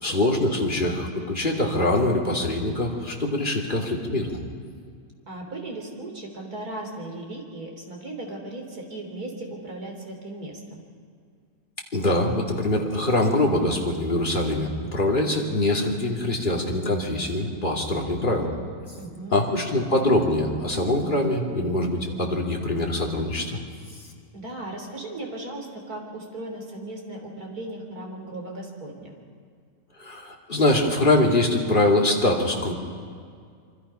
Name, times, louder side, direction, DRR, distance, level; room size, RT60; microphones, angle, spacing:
voice 1, 0.0-4.4 11.9-18.5 19.3-23.6 30.0-32.7, left 1 dB, 35° left, -1 dB, 2.8 m, -23 dB
voice 2, 5.3-10.8 18.9-19.5 24.3-29.1, right 2 dB, 80° right, 1 dB, 4.0 m, -37 dB
26.0 x 24.5 x 5.7 m, 2.1 s
omnidirectional pair, 1.6 m